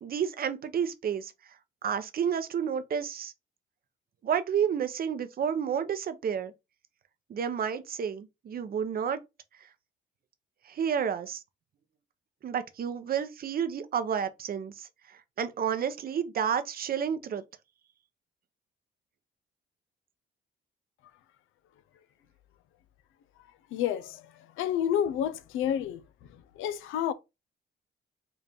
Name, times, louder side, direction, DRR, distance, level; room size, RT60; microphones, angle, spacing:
voice 1, 0.0-1.3 1.8-3.3 4.2-6.5 7.3-9.2 10.7-11.4 12.4-14.9 15.4-17.4, right 8 dB, 50° right, 0.6 m, -30 dB
voice 2, 23.7-24.2 24.6-26.0 26.6-27.1, left 10 dB, 90° left, 0.5 m, -29 dB
4.0 x 2.4 x 3.4 m
cardioid pair, 90°, 20 cm